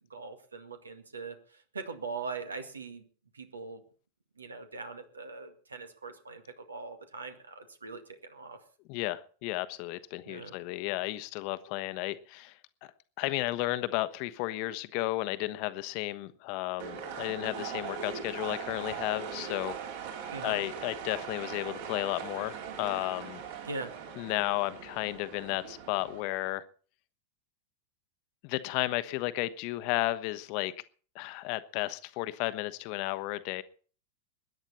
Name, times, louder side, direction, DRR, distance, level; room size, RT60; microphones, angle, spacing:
voice 1, 0.1-3.1 3.3-3.8 4.4-8.6 10.3-10.6 20.3-20.6 23.7-23.9, right 4 dB, 75° right, 2.0 m, -41 dB
voice 2, 8.9-12.9 13.2-19.8 20.4-23.4 24.2-26.6 28.4-30.7 31.1-33.6, left 18 dB, 45° left, 1.1 m, -33 dB
sound 1, 16.8-26.2, right 7 dB, 55° right, 3.8 m, -40 dB
21.5 x 10.5 x 4.3 m
figure-of-eight pair, 90°, 0 cm